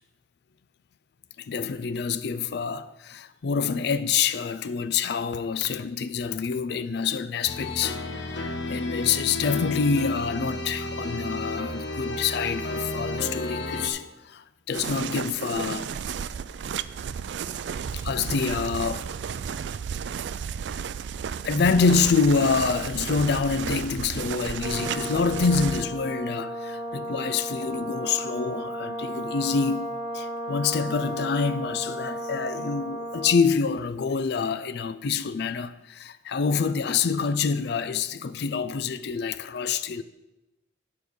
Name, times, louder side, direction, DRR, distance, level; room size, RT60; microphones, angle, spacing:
voice 1, 1.5-15.9 17.9-19.1 21.4-40.0, left 5 dB, 65° left, 0.4 m, -26 dB
sound 1, 7.5-13.9, left 2 dB, 85° left, 1.1 m, -32 dB
sound 2, 14.7-25.9, right 7 dB, 70° right, 0.3 m, -33 dB
Brass instrument, 24.6-33.5, equal, 25° right, 1.9 m, -34 dB
9.3 x 5.2 x 6.3 m
head